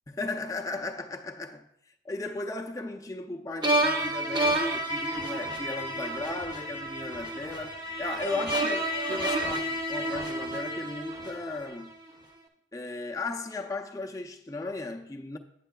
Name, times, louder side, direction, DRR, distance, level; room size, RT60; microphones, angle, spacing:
voice 1, 0.1-1.7 2.0-11.9 12.7-15.4, left 3 dB, 20° left, 0.4 m, -36 dB
sound 1, 3.6-11.8, right 1 dB, 25° right, 0.7 m, -30 dB
8.9 x 8.3 x 2.3 m
head